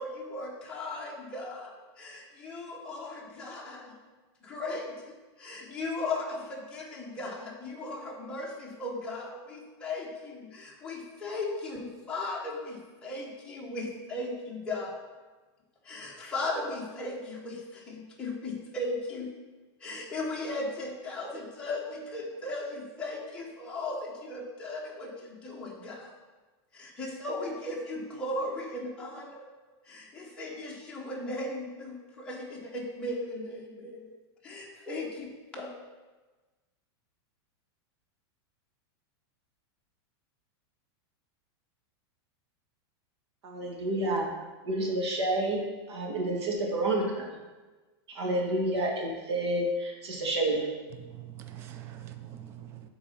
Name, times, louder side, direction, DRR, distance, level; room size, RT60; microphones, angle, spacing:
voice 1, 0.0-3.9 4.4-4.9 5.4-15.0 15.8-19.3 19.8-26.1 26.7-29.5 29.8-34.1 34.4-35.7, left 2 dB, 5° left, -5 dB, 1.0 m, -37 dB
voice 2, 43.4-44.3 44.7-47.3 48.1-50.7, right 1 dB, 85° right, -1 dB, 1.6 m, -29 dB
voice 3, 51.0-52.9, right 12 dB, 20° right, 8 dB, 0.3 m, -44 dB
7.4 x 4.0 x 5.5 m, 1.3 s
supercardioid pair, 175°, 14 cm